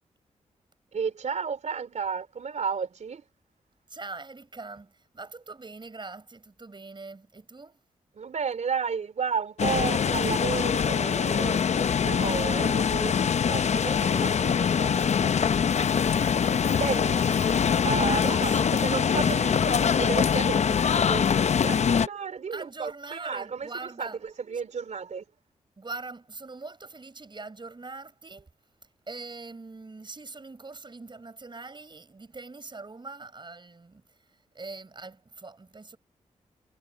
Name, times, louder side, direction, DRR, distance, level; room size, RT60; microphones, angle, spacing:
voice 1, 0.9-3.2 8.2-15.5 16.6-17.5 17.8-24.1 24.5-25.3, right 6 dB, 65° right, 3.6 m, -33 dB
voice 2, 3.9-7.8 18.1-19.0 22.5-24.2 25.8-28.5 29.1-34.0 34.5-36.0, right 3 dB, 35° right, 6.7 m, -42 dB
sound 1, 9.6-22.1, left 7 dB, 60° left, 0.7 m, -24 dB
cardioid pair, 55°, 13 cm